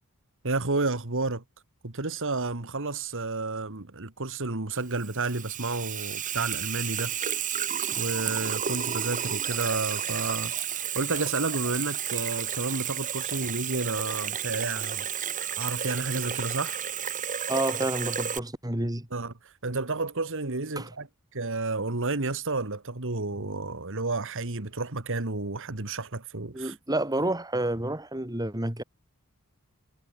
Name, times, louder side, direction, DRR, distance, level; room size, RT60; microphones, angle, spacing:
voice 1, 0.4-1.4 1.8-7.1 8.0-10.5 11.0-15.1 15.5-16.8 19.1-21.1 21.3-26.7, right 3 dB, 60° right, 1.9 m, -31 dB
Water tap faucet / Sink (filling or washing), 4.8-18.4, right 9 dB, 35° right, 3.1 m, -32 dB
voice 2, 17.5-19.1 20.8-20.9 26.5-28.8, right 1 dB, 15° right, 3.3 m, -29 dB
head